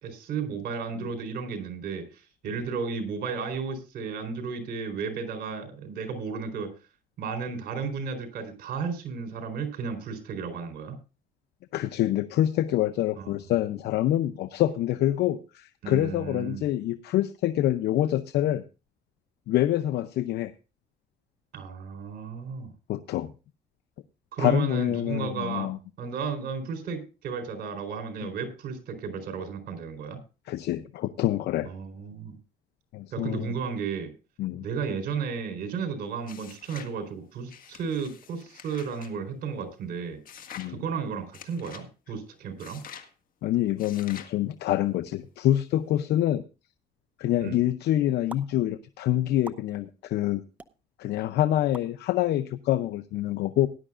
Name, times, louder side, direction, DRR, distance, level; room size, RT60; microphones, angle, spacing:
voice 1, 0.0-6.7 7.2-11.0 13.2-13.3 15.8-16.6 21.5-22.7 24.3-25.7 26.0-30.2 31.6-32.4 33.1-34.1 34.6-40.2 40.7-42.8 47.4-47.6, right 5 dB, 70° right, 6 dB, 4.2 m, -33 dB
voice 2, 11.7-18.6 19.5-20.5 22.9-23.3 24.4-25.8 30.5-31.7 32.9-33.6 34.4-34.7 40.6-40.8 43.4-46.4 47.2-50.4 51.0-53.7, left 13 dB, 80° left, 12 dB, 0.7 m, -26 dB
sound 1, 36.2-37.0 37.5-39.1 40.3-40.7 41.3-41.9 42.6-43.1 43.8-44.4, left 8 dB, 55° left, 1.8 m, -46 dB
sound 2, 48.3-48.4 49.4-49.6 50.6-50.7 51.7-51.9, right 2 dB, 10° right, 0.8 m, -41 dB
18.5 x 11.0 x 2.5 m, 0.30 s
cardioid pair, 95°, 17 cm